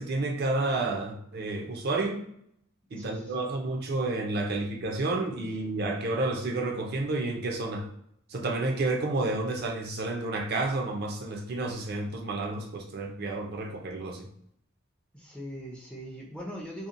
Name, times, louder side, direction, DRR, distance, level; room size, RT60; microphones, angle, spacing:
voice 1, 0.0-2.2 2.9-7.9 8.3-14.3, right 2 dB, 50° right, 2 dB, 0.5 m, -30 dB
voice 2, 3.0-3.5 15.1-16.9, equal, 5° left, -2 dB, 0.4 m, -41 dB
2.7 x 2.1 x 2.5 m, 0.71 s
head